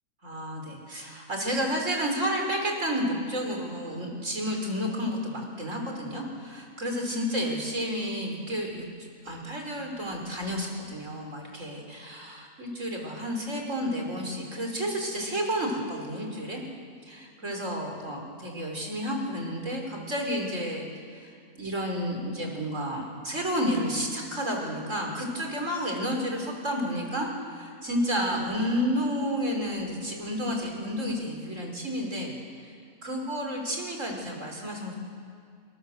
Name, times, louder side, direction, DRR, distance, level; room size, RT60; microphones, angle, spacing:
voice 1, 0.2-8.8 9.2-16.6 17.1-20.9 21.1-32.4 32.6-32.7 33.0-35.0, equal, 65° right, 1 dB, 5.7 m, -31 dB
27.0 x 27.0 x 8.0 m, 2.2 s
omnidirectional pair, 1.4 m